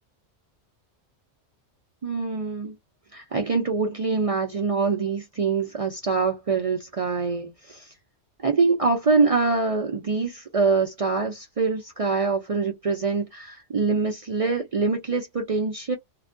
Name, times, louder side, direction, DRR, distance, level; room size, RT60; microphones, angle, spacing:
voice 1, 2.0-2.8 3.1-7.9 8.4-16.0, right 4 dB, 55° right, 0.4 m, -24 dB
2.3 x 2.1 x 2.5 m
omnidirectional pair, 1.2 m